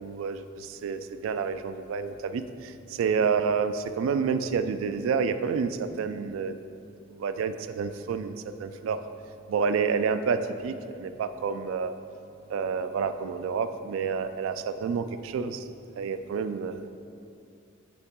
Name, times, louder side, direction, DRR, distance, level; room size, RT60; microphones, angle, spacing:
voice 1, 0.0-6.6 7.1-8.3 8.6-9.0 9.5-11.9 12.5-15.6 16.0-16.9, right 5 dB, 80° right, 10 dB, 0.3 m, -29 dB
7.0 x 3.9 x 3.6 m, 2.5 s
head